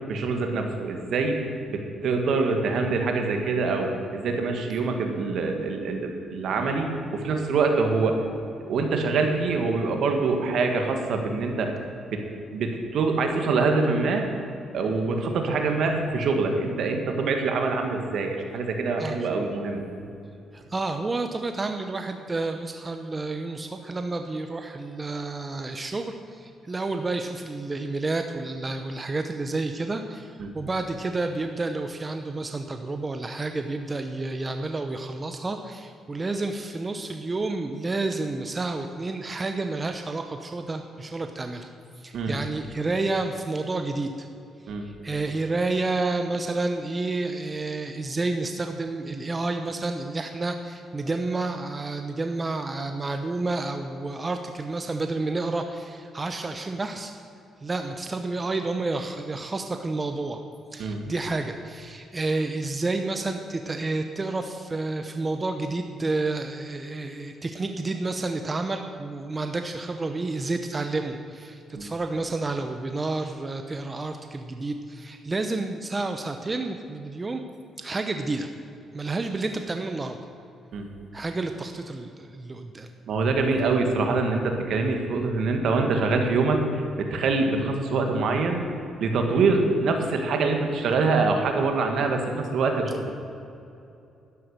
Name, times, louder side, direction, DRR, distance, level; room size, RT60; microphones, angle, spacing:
voice 1, 0.1-1.4 1.7-8.2 8.7-11.7 12.1-12.3 12.5-14.3 14.7-19.9 30.4-30.5 42.1-42.4 44.7-44.9 60.8-61.0 71.7-71.9 80.7-80.9 83.1-88.6 89.0-93.1, right 3 dB, 70° right, 4 dB, 2.0 m, -25 dB
voice 2, 19.0-19.4 20.5-41.7 42.0-44.3 44.6-57.2 57.6-60.4 60.7-77.4 77.8-78.5 78.9-80.2 81.1-82.9, right 3 dB, 25° right, 6 dB, 0.8 m, -30 dB
12.0 x 10.5 x 6.7 m, 2.7 s
cardioid pair, 90°, 0 cm